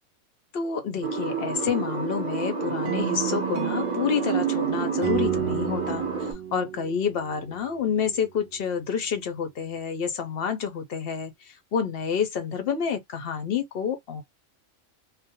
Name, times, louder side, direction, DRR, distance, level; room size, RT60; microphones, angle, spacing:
voice 1, 0.5-14.2, left 7 dB, 60° left, 0.6 m, -29 dB
sound 1, 1.0-6.3, right 5 dB, 30° right, 0.7 m, -30 dB
sound 2, 2.8-7.7, right 10 dB, 80° right, 0.4 m, -31 dB
2.4 x 2.1 x 2.7 m
omnidirectional pair, 1.4 m